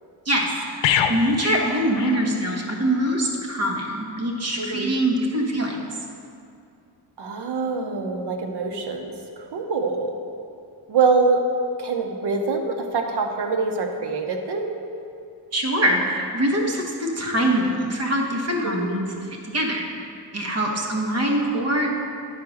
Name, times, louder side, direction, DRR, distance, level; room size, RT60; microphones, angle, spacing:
voice 1, 0.2-5.8 15.5-19.1 19.5-19.9 20.3-22.0, right 1 dB, 35° right, -1 dB, 1.3 m, -23 dB
sound 1, 0.8-2.7 3.0-3.2, left 8 dB, 90° left, 0.6 m, -25 dB
voice 2, 4.6-4.9 7.2-10.1 10.9-11.4 11.8-14.7 18.6-18.9, right 4 dB, 60° right, 4 dB, 0.9 m, -24 dB
10.0 x 4.7 x 6.3 m, 2.5 s
wide cardioid pair, 135°, 45 cm